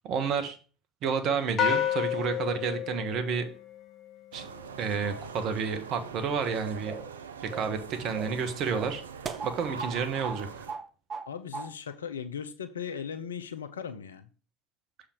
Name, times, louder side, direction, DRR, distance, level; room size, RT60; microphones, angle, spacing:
voice 1, 0.0-0.6 1.0-3.4 4.3-4.5 4.8-6.9 7.4-9.0 9.4-10.6, right 6 dB, 55° right, 1.4 m, -30 dB
sound 1, 1.6-4.1, left 9 dB, 40° left, 1.3 m, -30 dB
sound 2, 4.3-10.7, right 6 dB, 85° right, 0.6 m, -42 dB
sound 3, 6.8-7.2 7.5-7.8 8.1-8.4 8.8-10.0 10.2-10.4 10.7-11.3 11.5-11.7, right 5 dB, 35° right, 0.8 m, -38 dB
voice 2, 11.3-14.3, left 7 dB, 85° left, 0.7 m, -38 dB
7.2 x 5.0 x 4.6 m
hypercardioid pair, 70°, 0 cm